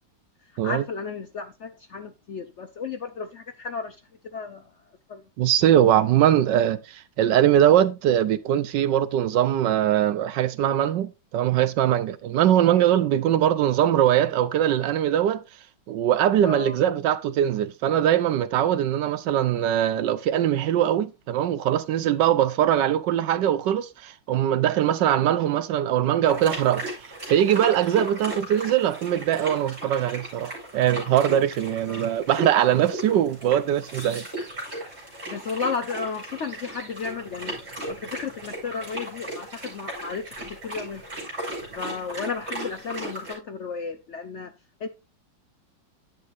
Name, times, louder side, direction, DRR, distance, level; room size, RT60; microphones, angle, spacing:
voice 1, 0.6-4.0 4.3-4.6 5.1-5.2 16.4-16.8 31.9-32.1 35.3-41.0 41.8-44.5 44.8-44.9, left 5 dB, 75° left, 0.6 m, -33 dB
voice 2, 5.4-15.4 15.9-26.9 27.3-34.2, right 11 dB, 75° right, 1.2 m, -21 dB
sound 1, 26.2-43.3, right 1 dB, 30° right, 6.1 m, -36 dB
10.5 x 8.2 x 2.5 m
omnidirectional pair, 2.1 m